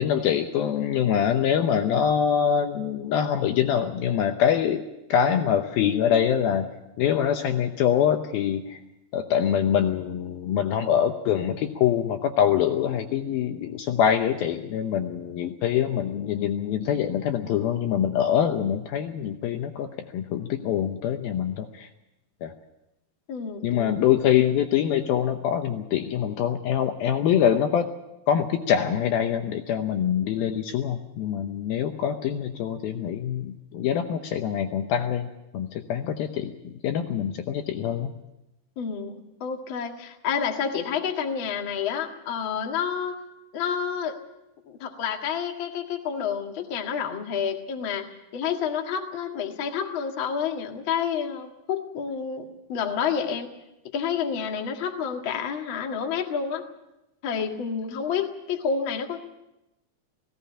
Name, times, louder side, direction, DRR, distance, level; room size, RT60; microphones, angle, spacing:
voice 1, 0.0-4.8 5.1-6.7 7.0-8.8 9.1-19.9 20.1-21.9 22.4-22.5 23.6-27.9 28.3-35.3 35.5-38.1, left 9 dB, 75° left, 6 dB, 2.5 m, -24 dB
voice 2, 23.3-23.9 38.7-43.2 43.5-44.2 44.7-48.1 48.3-53.5 53.9-56.6 57.2-59.2, left 7 dB, 45° left, 3 dB, 1.6 m, -29 dB
18.0 x 16.5 x 8.7 m, 0.93 s
omnidirectional pair, 4.9 m